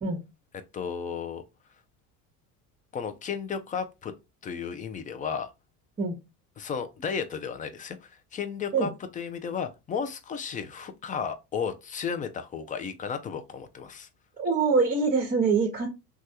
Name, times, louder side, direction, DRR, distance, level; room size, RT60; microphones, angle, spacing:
voice 1, 0.7-1.4 2.9-4.1 4.4-5.5 6.6-14.1, left 6 dB, 20° left, 0.3 m, -34 dB
voice 2, 14.4-15.9, right 4 dB, 20° right, 0.8 m, -24 dB
3.2 x 2.3 x 2.6 m
supercardioid pair, 85°, 45 cm